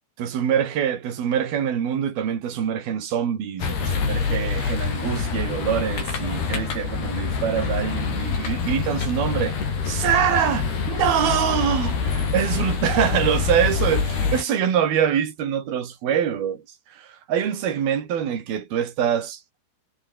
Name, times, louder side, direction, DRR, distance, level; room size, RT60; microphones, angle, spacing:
voice 1, 0.2-9.6 9.9-16.6 16.9-19.4, right 9 dB, 50° right, 5.0 m, -24 dB
sound 1, 3.6-14.4, left 5 dB, 50° left, 7.5 m, -26 dB
omnidirectional pair, 6.0 m